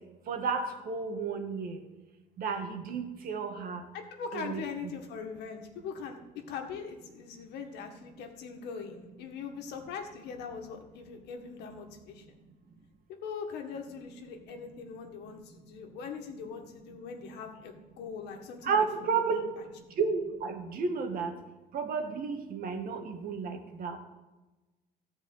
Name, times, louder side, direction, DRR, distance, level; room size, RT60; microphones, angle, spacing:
voice 1, 0.3-1.8 2.4-3.8 4.3-4.6 18.6-19.4 20.0-21.3 21.7-24.0, right 5 dB, 60° right, 5 dB, 1.6 m, -32 dB
voice 2, 3.9-6.2 6.5-12.2 13.1-19.4 19.9-20.0, left 6 dB, 80° left, 3 dB, 1.7 m, -41 dB
14.0 x 4.8 x 7.8 m, 1.1 s
cardioid pair, 110°, 17 cm